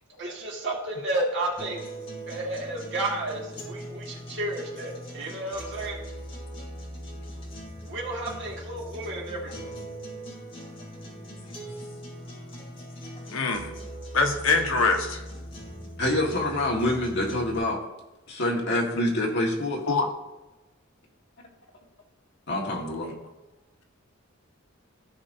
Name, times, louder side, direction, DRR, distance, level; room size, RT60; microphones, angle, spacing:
voice 1, 0.2-1.8 2.3-6.0 7.9-9.5, right 2 dB, 60° right, -2 dB, 2.2 m, -32 dB
sound 1, 1.6-17.6, equal, 30° left, 2.5 m, -40 dB
voice 2, 13.3-13.7 14.1-15.2 19.9-20.1, left 3 dB, 90° left, 4 dB, 1.1 m, -23 dB
voice 3, 16.0-17.8 18.3-19.8 22.5-23.1, left 1 dB, 60° left, -2 dB, 1.8 m, -26 dB
15.0 x 5.0 x 2.8 m, 1.0 s
head